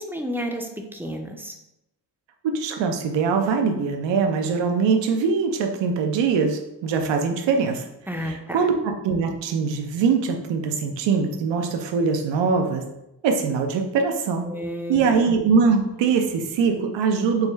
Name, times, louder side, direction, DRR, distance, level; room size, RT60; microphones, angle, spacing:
voice 1, 0.0-1.5 8.1-8.7 14.4-15.2, equal, 5° right, 3 dB, 0.4 m, -31 dB
voice 2, 2.4-7.9 8.2-12.9 13.2-14.5 14.9-17.5, right 5 dB, 85° right, 5 dB, 0.6 m, -22 dB
4.7 x 2.1 x 3.4 m, 0.87 s
cardioid pair, 90°, 43 cm